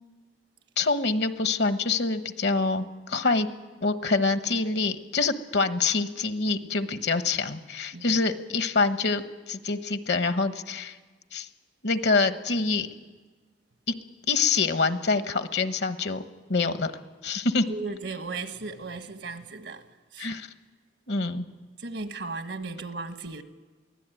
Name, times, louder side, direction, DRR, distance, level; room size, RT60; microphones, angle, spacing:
voice 1, 0.8-3.5 3.8-11.0 11.3-11.5 11.8-12.9 14.3-16.2 16.5-16.9 17.2-17.7 20.2-20.5 21.1-21.5, left 4 dB, 70° left, 1.2 m, -26 dB
voice 2, 17.7-20.3 21.8-23.4, right 3 dB, 80° right, 1.4 m, -36 dB
23.0 x 16.5 x 9.2 m
head